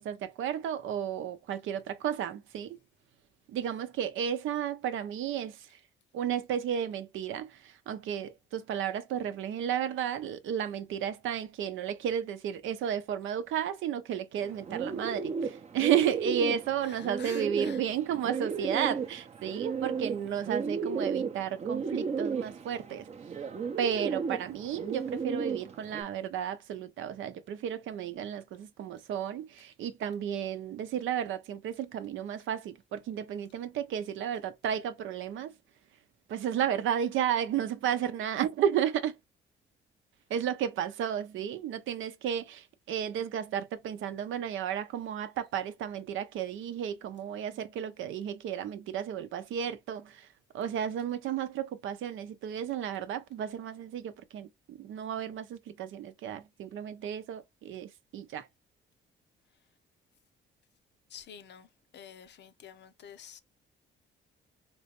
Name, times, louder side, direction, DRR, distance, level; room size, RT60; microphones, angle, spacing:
voice 1, 0.0-2.8 3.5-5.8 6.1-23.1 23.8-35.6 36.3-39.2 40.3-50.3 50.5-58.5, right 9 dB, 80° right, 0.6 m, -33 dB
Bird, 14.4-26.0, right 5 dB, 35° right, 0.6 m, -34 dB
voice 2, 16.9-17.8 61.1-61.7 61.9-63.4, left 8 dB, 60° left, 0.6 m, -49 dB
3.3 x 3.0 x 2.9 m
cardioid pair, 90°, 20 cm